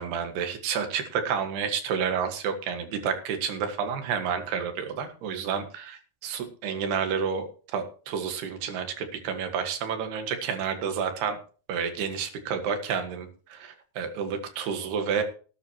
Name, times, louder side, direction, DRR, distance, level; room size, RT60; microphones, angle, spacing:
voice 1, 0.0-11.4 11.7-15.2, right 7 dB, 90° right, 7 dB, 3.7 m, -30 dB
18.5 x 10.5 x 3.0 m, 0.39 s
omnidirectional pair, 4.5 m